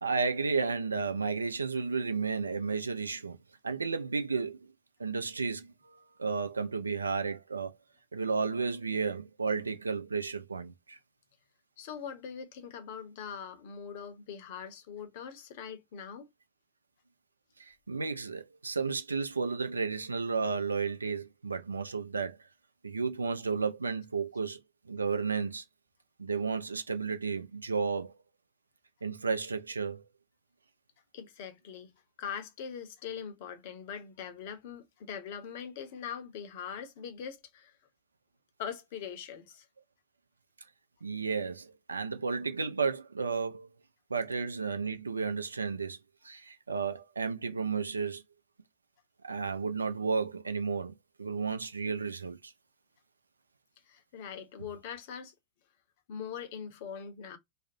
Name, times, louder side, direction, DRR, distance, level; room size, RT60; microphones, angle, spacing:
voice 1, 0.0-3.4 3.6-4.6 5.0-7.8 8.1-11.0 17.6-22.4 22.8-24.6 24.9-25.6 26.2-28.1 29.0-30.0 41.0-43.7 44.1-46.0 46.2-48.2 49.2-52.5, right 5 dB, 75° right, 0.4 m, -33 dB
voice 2, 11.8-16.3 31.1-31.9 32.2-37.8 38.6-39.7 53.9-55.3 56.1-57.4, left 7 dB, 50° left, 0.6 m, -42 dB
2.4 x 2.0 x 2.5 m
figure-of-eight pair, 90°, 0 cm